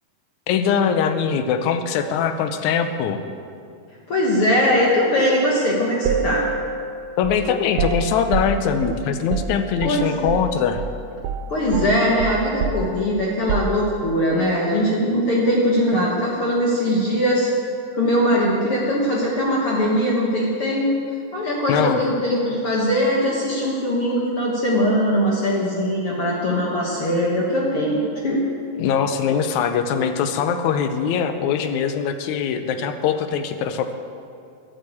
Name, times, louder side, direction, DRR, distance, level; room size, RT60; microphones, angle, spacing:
voice 1, 0.5-3.2 7.2-10.8 21.7-22.0 28.8-33.9, left 7 dB, 75° left, 8 dB, 2.1 m, -22 dB
voice 2, 4.1-6.4 9.8-10.3 11.5-17.5 17.9-20.9 21.3-28.4, equal, 50° left, -4 dB, 2.1 m, -21 dB
sound 1, 6.1-10.5 10.8-11.0 11.2-14.2, right 5 dB, 85° right, 2.3 m, -28 dB
11.0 x 8.7 x 8.4 m, 2.4 s
omnidirectional pair, 3.6 m